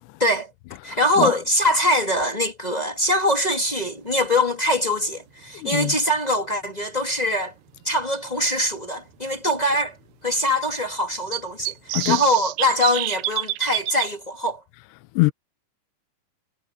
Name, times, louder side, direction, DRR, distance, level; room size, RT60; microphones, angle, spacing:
voice 1, 0.8-7.5 7.8-10.0 10.2-14.6, equal, 20° left, 1.2 m, -23 dB
voice 2, 5.6-5.9 11.9-12.2 15.2-15.3, left 22 dB, 80° left, 2.7 m, -21 dB
sound 1, 5.8-5.9 7.8-7.9 8.5-8.6 8.8-8.9 11.3-14.1, right 18 dB, 80° right, 2.5 m, -28 dB
omnidirectional pair, 5.2 m